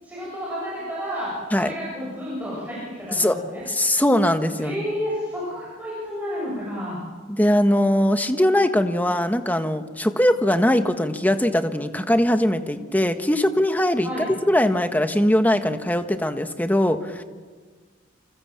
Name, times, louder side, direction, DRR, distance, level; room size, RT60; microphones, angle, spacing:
voice 1, 0.0-3.6 4.6-7.0 14.0-14.3, equal, 10° right, -6 dB, 7.4 m, -31 dB
voice 2, 3.7-4.8 7.3-14.1 14.4-17.2, left 1 dB, 10° left, 7 dB, 1.4 m, -21 dB
28.5 x 26.0 x 7.5 m, 1.5 s
head